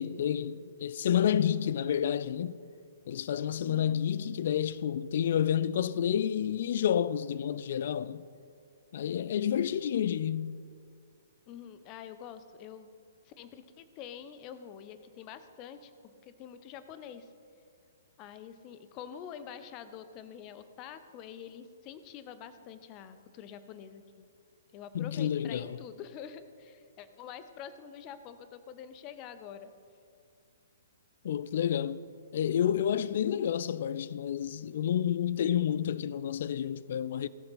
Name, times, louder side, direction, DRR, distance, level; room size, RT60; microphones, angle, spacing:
voice 1, 0.0-2.6 3.1-8.3 8.9-10.6 24.9-25.8 31.2-32.0 32.3-37.3, left 9 dB, 55° left, 0.4 m, -29 dB
voice 2, 3.6-4.0 11.5-12.9 13.2-17.3 18.2-24.3 24.7-29.7, left 8 dB, 30° left, 0.8 m, -46 dB
19.0 x 6.7 x 4.1 m
figure-of-eight pair, 120°, 0 cm